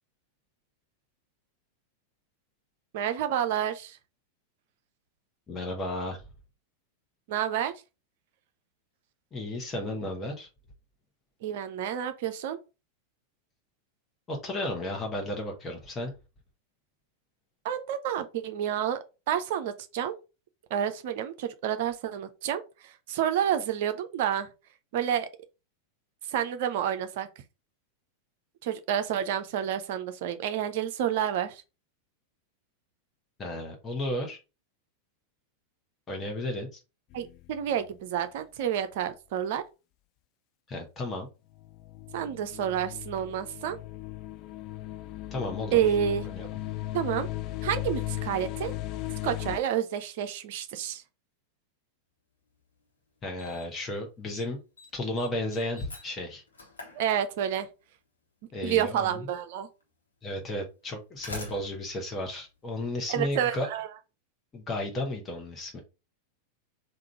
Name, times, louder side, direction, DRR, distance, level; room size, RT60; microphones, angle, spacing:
voice 1, 2.9-4.0 7.3-7.8 11.4-12.6 17.6-19.0 19.3-20.1 20.7-24.5 24.9-25.3 26.3-27.3 28.6-31.6 37.1-39.6 42.1-43.8 45.7-46.3 46.9-47.3 47.6-48.7 49.2-51.0 56.9-57.7 58.6-59.7 63.1-63.9, right 10 dB, 50° right, 0.6 m, -29 dB
voice 2, 5.5-6.2 9.3-10.5 14.3-16.1 33.4-34.4 36.1-36.8 40.7-41.3 45.3-45.8 46.3-46.5 53.2-54.6 54.9-56.4 58.5-59.3 60.2-63.7 64.5-65.8, left 1 dB, 20° left, 1.1 m, -33 dB
sound 1, 37.1-37.9 41.5-49.6, left 16 dB, 40° left, 0.3 m, -37 dB
Slam, 52.6-52.7 53.4-53.8 54.1-54.5 54.8-57.7 58.8-58.9 59.8-59.9 60.8-63.2, left 2 dB, 75° left, 1.2 m, -45 dB
3.7 x 2.5 x 4.4 m
figure-of-eight pair, 90°, 0 cm